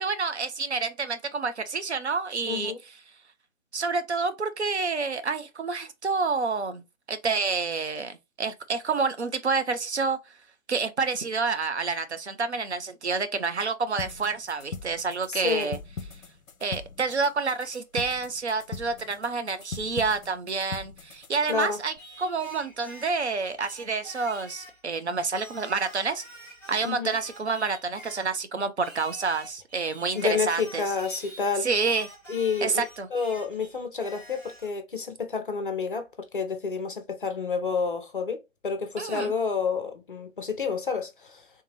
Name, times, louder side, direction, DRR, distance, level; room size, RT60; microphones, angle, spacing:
voice 1, 0.0-2.7 3.7-6.8 7.1-10.2 10.7-15.8 16.6-26.2 26.7-30.9 31.6-32.1 32.6-33.1 39.0-39.3, right 4 dB, 55° right, 0.7 m, -28 dB
voice 2, 2.5-2.8 15.3-15.7 21.5-21.8 26.8-27.1 30.1-31.7 32.3-32.7 33.1-41.4, left 5 dB, 40° left, 0.7 m, -29 dB
sound 1, 14.0-22.0, left 5 dB, 75° left, 0.6 m, -41 dB
Singing, 22.0-24.8 25.3-28.4 28.8-31.5 31.8-34.7, right 1 dB, 15° right, 1.1 m, -47 dB
3.5 x 2.7 x 3.1 m
figure-of-eight pair, 150°, 41 cm